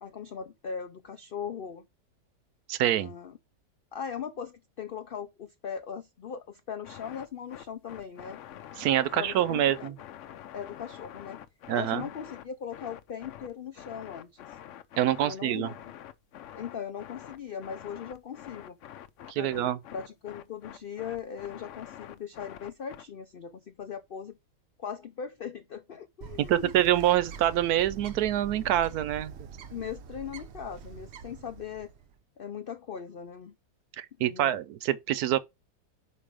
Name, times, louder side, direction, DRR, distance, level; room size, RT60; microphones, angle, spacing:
voice 1, 0.0-1.8 2.9-3.3 3.9-8.4 9.2-9.9 10.5-11.4 11.7-14.6 15.2-15.8 16.6-18.8 19.4-24.4 24.8-26.7 29.7-31.9 32.4-33.5 34.2-34.6, left 7 dB, 90° left, 0.4 m, -39 dB
voice 2, 2.7-3.1 8.8-10.0 11.7-12.0 15.0-15.7 19.3-19.8 26.5-29.3 34.0-35.4, right 12 dB, 75° right, 1.1 m, -26 dB
sound 1, 6.8-23.0, left 11 dB, 65° left, 0.8 m, -46 dB
Bird, 26.2-32.1, right 6 dB, 60° right, 0.7 m, -44 dB
5.4 x 4.8 x 4.8 m
omnidirectional pair, 1.7 m